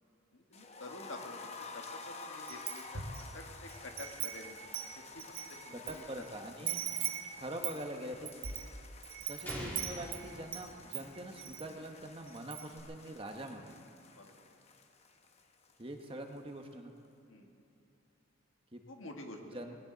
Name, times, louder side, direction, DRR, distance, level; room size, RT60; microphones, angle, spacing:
voice 1, 0.3-4.5 4.9-6.0 14.2-14.3 17.3-17.5 18.9-19.4, left 2 dB, 70° left, 2 dB, 1.7 m, -49 dB
sound 1, 0.5-16.4 16.6-16.7 17.0-17.1, left 3 dB, 30° left, 0.9 m, -51 dB
Wind chime, 2.5-3.3 3.7-5.9 6.2-6.3 6.7-10.7 10.9-11.6 12.0-12.1 12.4-12.8, right 10 dB, 70° right, 1.2 m, -40 dB
voice 2, 5.7-6.8 7.4-8.3 9.3-13.8 15.8-16.9 18.7-18.8 19.4-19.8, right 1 dB, 25° right, 4 dB, 1.0 m, -44 dB
sound 2, 9.5-11.4, equal, 10° left, 2.5 m, -44 dB
19.0 x 18.0 x 4.0 m, 2.9 s
head